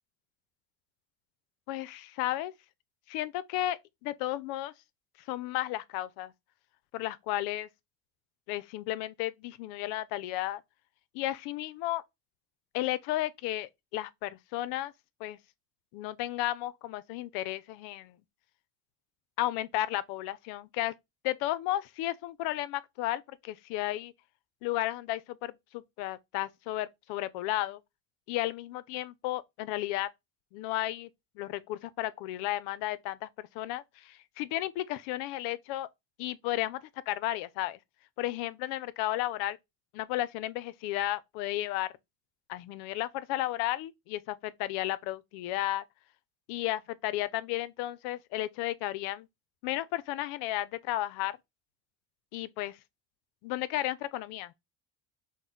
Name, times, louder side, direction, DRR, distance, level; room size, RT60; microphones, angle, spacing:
voice 1, 1.7-2.5 3.1-4.7 5.3-6.3 6.9-7.7 8.5-10.6 11.1-12.0 12.7-14.9 15.2-15.4 15.9-18.2 19.4-20.9 21.2-24.1 24.6-27.8 28.3-30.1 30.5-31.1 31.4-35.9 36.2-37.8 38.2-39.6 39.9-41.9 42.5-45.8 46.5-49.3 49.6-51.4 52.3-52.8 53.4-54.5, left 15 dB, 85° left, 0.5 m, -33 dB
5.9 x 2.1 x 3.8 m
supercardioid pair, 95°, 37 cm